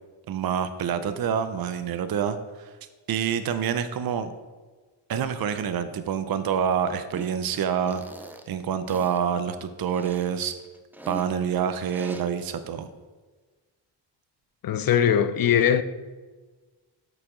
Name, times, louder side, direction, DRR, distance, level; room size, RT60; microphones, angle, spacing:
voice 1, 0.3-2.7 3.1-4.3 5.1-8.0 8.5-10.5 11.1-12.9, right 8 dB, 55° right, 0.6 m, -27 dB
sound 1, 7.1-7.4 7.9-8.5 8.9-9.2 9.9-11.3 11.9-12.2, right 1 dB, 5° right, 0.3 m, -42 dB
voice 2, 14.6-15.8, left 9 dB, 55° left, 0.5 m, -20 dB
8.3 x 4.9 x 3.7 m
cardioid pair, 95°, 44 cm